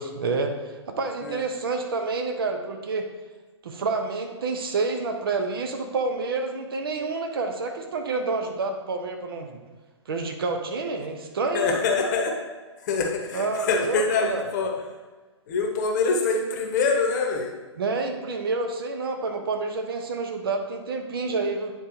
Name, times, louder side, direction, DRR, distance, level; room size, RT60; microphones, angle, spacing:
voice 1, 0.0-3.1 3.6-9.6 10.1-11.8 13.3-14.0 14.3-14.4 17.8-21.7, right 3 dB, 50° right, 4 dB, 0.9 m, -28 dB
voice 2, 11.5-12.4 12.8-14.7 15.5-17.5, left 4 dB, 40° left, 1 dB, 1.1 m, -25 dB
9.2 x 3.9 x 2.8 m, 1.3 s
figure-of-eight pair, 125°, 15 cm